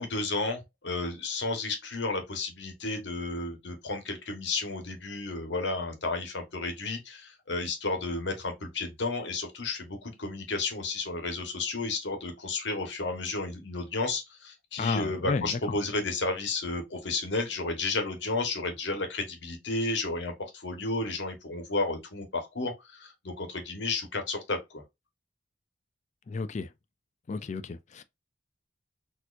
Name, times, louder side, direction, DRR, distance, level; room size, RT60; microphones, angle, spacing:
voice 1, 0.0-24.8, left 3 dB, 75° left, 1.3 m, -32 dB
voice 2, 14.8-15.6 26.3-26.7 27.3-28.0, left 4 dB, 40° left, 0.3 m, -32 dB
4.2 x 2.9 x 2.5 m
head